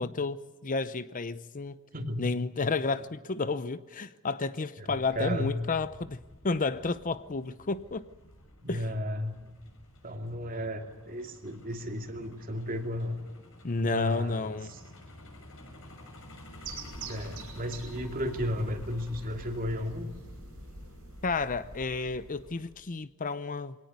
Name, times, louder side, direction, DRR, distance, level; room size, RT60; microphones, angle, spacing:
voice 1, 0.0-1.8 2.2-8.1 8.7-8.8 13.6-14.7 21.2-23.8, left 3 dB, 40° left, 0.7 m, -31 dB
voice 2, 1.9-2.3 4.8-5.5 8.6-9.4 10.0-13.2 13.8-14.8 17.0-20.1, equal, 40° right, 2.7 m, -34 dB
Truck, 4.9-22.7, left 1 dB, 70° left, 6.6 m, -51 dB
sound 1, 16.6-22.9, right 3 dB, 65° right, 5.5 m, -45 dB
23.5 x 18.5 x 9.4 m
head